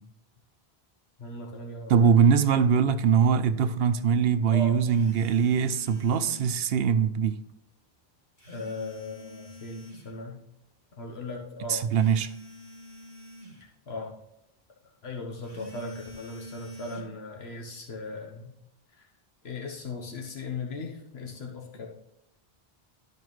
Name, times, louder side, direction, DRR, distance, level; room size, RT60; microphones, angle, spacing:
voice 1, 1.2-2.2 4.5-4.8 8.5-10.4 11.0-11.9 13.9-14.1 14.8-18.5 18.9-19.1 19.4-21.9, left 3 dB, 85° left, 1.5 m, -38 dB
voice 2, 1.9-7.4 11.7-12.3, right 7 dB, 75° right, 0.8 m, -22 dB
sound 1, 4.9-6.6 8.4-10.1 11.9-13.6 15.4-17.0, equal, 50° left, 2.5 m, -46 dB
12.5 x 4.9 x 3.2 m
omnidirectional pair, 1.0 m